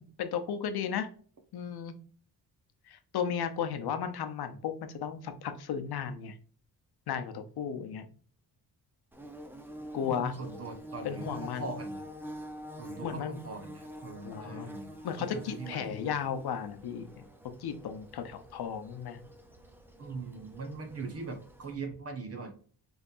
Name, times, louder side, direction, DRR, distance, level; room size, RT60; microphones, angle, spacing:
voice 1, 0.2-1.1 1.5-1.9 2.9-6.3 7.1-8.1 9.9-10.3 11.0-11.7 13.0-13.4 14.2-14.7 15.0-17.2 17.6-19.2, left 7 dB, 75° left, 8 dB, 0.8 m, -34 dB
Bird / Buzz, 9.1-21.7, equal, 5° right, 0.6 m, -47 dB
voice 2, 10.0-12.0 12.8-14.9 15.2-16.2 20.0-22.5, right 3 dB, 35° right, 4 dB, 1.2 m, -41 dB
5.3 x 3.5 x 2.5 m, 0.44 s
wide cardioid pair, 130°, 39 cm